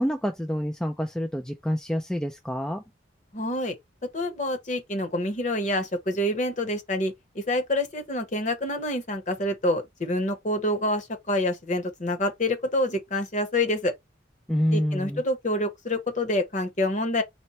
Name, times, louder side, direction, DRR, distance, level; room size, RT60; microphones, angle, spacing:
voice 1, 0.0-2.8 14.5-15.2, equal, 5° left, 0.3 m, -27 dB
voice 2, 3.3-3.7 4.1-13.9 14.7-17.2, left 1 dB, 40° left, 0.9 m, -27 dB
4.3 x 2.1 x 4.0 m
head